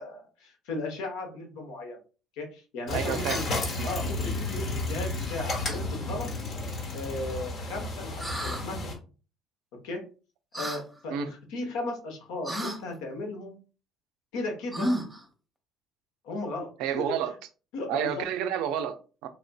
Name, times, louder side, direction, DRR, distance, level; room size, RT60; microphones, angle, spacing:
voice 1, 0.0-2.0 2.4-3.5 3.8-6.3 6.9-8.8 9.8-10.0 10.5-13.6 14.3-14.9 16.2-16.7 17.7-18.2, left 2 dB, 75° left, 0.9 m, -36 dB
sound 1, 2.9-8.9, left 2 dB, 55° left, 1.2 m, -32 dB
voice 2, 2.9-3.4 3.7-3.9 11.1-11.3 16.8-17.3 17.9-19.3, right 9 dB, 70° right, 0.4 m, -30 dB
sound 2, 8.2-8.6 10.5-10.8 12.4-12.8 14.7-15.2, equal, 10° right, 0.9 m, -31 dB
3.4 x 2.4 x 2.2 m
hypercardioid pair, 60°, 0 cm